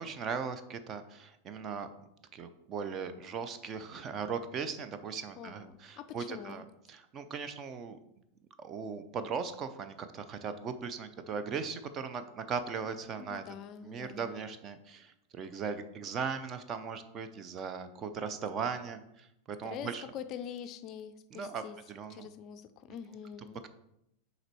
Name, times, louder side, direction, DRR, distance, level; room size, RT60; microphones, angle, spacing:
voice 1, 0.0-1.9 2.3-8.0 8.6-13.4 13.8-20.0 21.3-21.6 21.9-22.3, right 6 dB, 30° right, 10 dB, 0.6 m, -38 dB
voice 2, 5.4-6.6 13.2-14.5 19.6-21.8 22.1-23.6, left 8 dB, 35° left, 11 dB, 0.4 m, -45 dB
6.6 x 4.1 x 4.5 m, 0.83 s
figure-of-eight pair, 90°, 0 cm